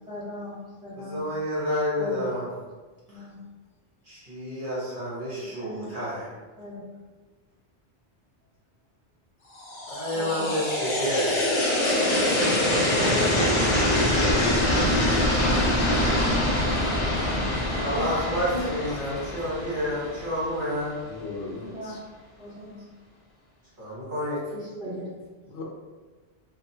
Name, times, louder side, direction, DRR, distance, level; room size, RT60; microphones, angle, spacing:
voice 1, 0.1-1.3 2.0-2.5 3.1-3.4 5.6-5.9 6.6-6.8 10.1-10.5 12.9-13.7 17.7-18.7 21.7-22.0 22.4-22.9 24.5-25.1, equal, 5° right, -10 dB, 0.9 m, -37 dB
voice 2, 0.9-2.5 3.1-3.3 4.0-6.3 9.9-11.4 17.6-21.0 23.8-24.4, equal, 50° right, -9 dB, 1.2 m, -29 dB
sound 1, 9.6-20.6, left 1 dB, 40° left, 0.4 m, -24 dB
voice 3, 21.0-22.0 25.5-25.6, left 3 dB, 80° left, -2 dB, 0.9 m, -38 dB
2.8 x 2.3 x 2.6 m, 1.3 s
omnidirectional pair, 1.1 m